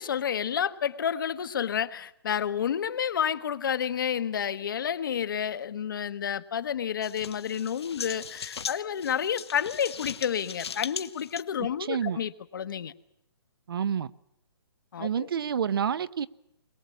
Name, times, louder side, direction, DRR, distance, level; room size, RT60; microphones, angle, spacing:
voice 1, 0.0-12.9 14.9-15.3, left 8 dB, 55° left, 1.2 m, -30 dB
sound 1, 7.0-11.4, left 6 dB, 80° left, 1.2 m, -39 dB
voice 2, 11.8-12.2 13.7-14.1 15.0-16.3, right 8 dB, 60° right, 0.8 m, -28 dB
22.0 x 20.0 x 8.4 m
hypercardioid pair, 170°, 13 cm